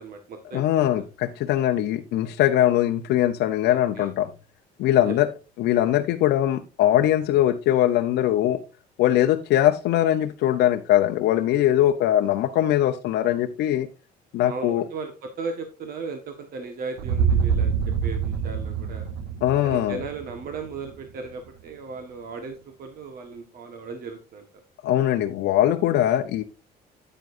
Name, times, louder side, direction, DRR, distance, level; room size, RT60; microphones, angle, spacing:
voice 1, 0.0-0.9 3.7-4.1 5.0-5.1 14.4-15.1 15.4-17.7 18.0-19.1 19.6-24.6, right 4 dB, 60° right, 5 dB, 1.4 m, -36 dB
voice 2, 0.5-4.3 4.8-5.3 5.6-8.6 9.0-13.9 14.3-14.8 19.4-20.0 24.8-26.4, left 12 dB, 80° left, 5 dB, 0.7 m, -21 dB
sound 1, 17.0-21.0, right 6 dB, 90° right, 0.8 m, -26 dB
9.4 x 9.0 x 2.6 m, 0.31 s
cardioid pair, 110°, 17 cm